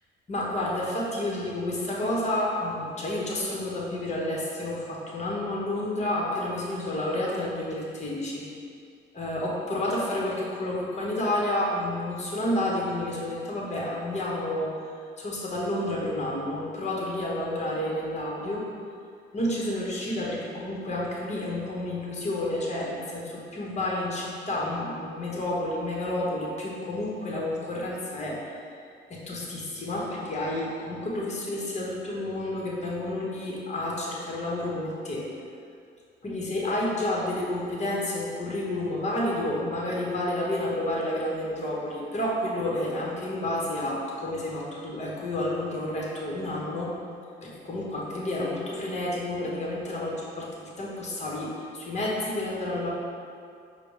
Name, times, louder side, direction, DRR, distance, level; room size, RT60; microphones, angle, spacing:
voice 1, 0.3-8.4 9.1-14.8 15.2-18.6 19.3-28.7 29.1-35.2 36.2-47.0 47.4-52.9, left 1 dB, 35° left, -4 dB, 1.1 m, -30 dB
5.0 x 2.2 x 4.7 m, 2.4 s
cardioid pair, 90°, 20 cm